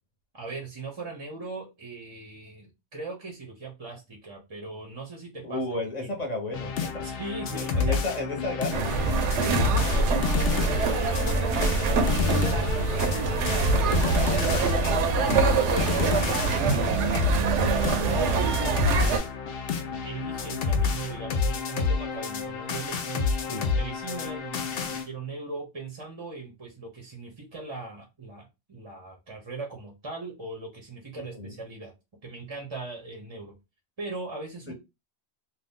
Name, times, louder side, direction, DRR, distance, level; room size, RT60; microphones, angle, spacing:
voice 1, 0.3-5.6 6.0-6.1 7.0-8.0 9.4-14.5 15.1-17.1 17.9-19.3 20.0-23.3 23.8-31.9 32.2-33.6 34.0-34.7, right 3 dB, 30° right, 0.6 m, -39 dB
voice 2, 5.4-7.1 7.5-9.3 11.9-12.6 14.7-15.3 23.5-23.7 31.2-31.5 34.7-34.8, left 2 dB, 40° left, 1.0 m, -34 dB
sound 1, 6.5-25.1, left 5 dB, 65° left, 0.7 m, -30 dB
sound 2, 8.7-19.2, right 3 dB, 85° right, 0.9 m, -24 dB
2.6 x 2.2 x 3.5 m
omnidirectional pair, 1.2 m